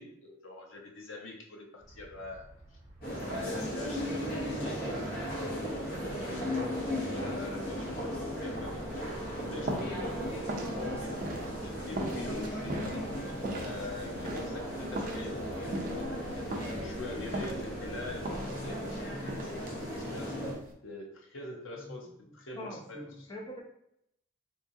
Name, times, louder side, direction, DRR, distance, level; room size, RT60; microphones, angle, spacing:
voice 1, 0.0-2.8 3.1-11.2 11.6-20.4 20.8-23.3, left 2 dB, 90° left, 1 dB, 0.8 m, -44 dB
sound 1, 1.8-18.3, right 1 dB, 15° right, 0.8 m, -51 dB
sound 2, 3.0-20.5, equal, 50° left, 1.0 m, -36 dB
sound 3, 8.5-20.7, right 1 dB, 45° right, 0.5 m, -41 dB
voice 2, 12.1-12.4 21.8-21.9 22.6-23.6, left 1 dB, 20° left, -3 dB, 0.8 m, -43 dB
3.6 x 2.7 x 2.6 m, 0.75 s
head